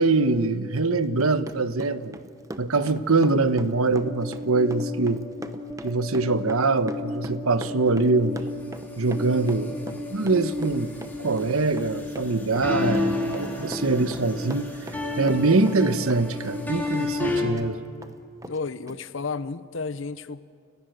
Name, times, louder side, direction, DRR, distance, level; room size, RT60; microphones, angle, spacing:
voice 1, 0.0-2.2 2.6-5.2 5.8-8.4 9.0-10.9 11.2-14.7 15.2-17.8, right 3 dB, 85° right, 11 dB, 1.1 m, -23 dB
Run, 1.0-15.8 16.1-17.7 18.0-18.1 18.4-18.6 18.9-19.0, right 1 dB, 15° right, 0.9 m, -40 dB
sound 1, 4.0-17.4, left 2 dB, 10° left, 3.2 m, -32 dB
voice 2, 18.4-20.4, left 4 dB, 65° left, 15 dB, 0.7 m, -32 dB
30.0 x 17.0 x 7.9 m, 2.3 s
head